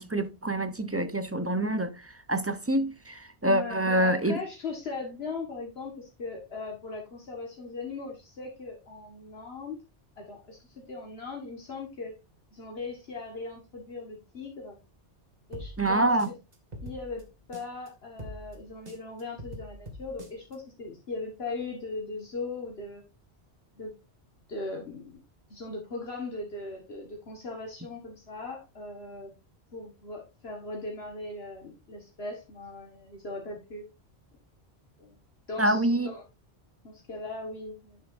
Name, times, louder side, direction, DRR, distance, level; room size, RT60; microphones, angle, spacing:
voice 1, 0.0-4.4 15.8-16.3 35.6-36.1, right 1 dB, 20° right, 0.5 m, -26 dB
voice 2, 3.4-9.8 10.2-12.1 12.5-14.8 15.5-16.4 16.8-17.2 17.5-23.0 23.8-23.9 24.5-25.2 25.5-29.3 29.7-33.8 35.0-35.2 35.5-36.2 36.8-38.0, left 3 dB, 65° left, 1.7 m, -39 dB
sound 1, 15.5-17.9 18.2-20.6, equal, 40° right, 1.5 m, -44 dB
10.5 x 6.7 x 2.5 m
omnidirectional pair, 1.1 m